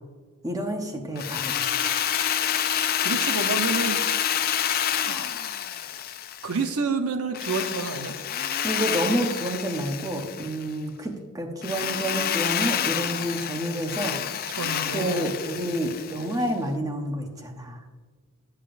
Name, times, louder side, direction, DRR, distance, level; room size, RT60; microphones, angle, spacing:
voice 1, 0.4-2.0 8.6-14.6 14.9-17.8, right 1 dB, 15° right, 3 dB, 0.9 m, -29 dB
Drill, 1.2-6.7 7.3-10.6 11.6-16.4, left 10 dB, 45° left, 0.4 m, -28 dB
sound 1, 1.6-4.1, right 4 dB, 35° right, 2.5 m, -46 dB
voice 2, 3.0-4.0 5.0-5.3 6.4-8.2 14.5-15.3, right 4 dB, 75° right, 8 dB, 0.7 m, -29 dB
12.0 x 6.8 x 2.5 m, 1.5 s
head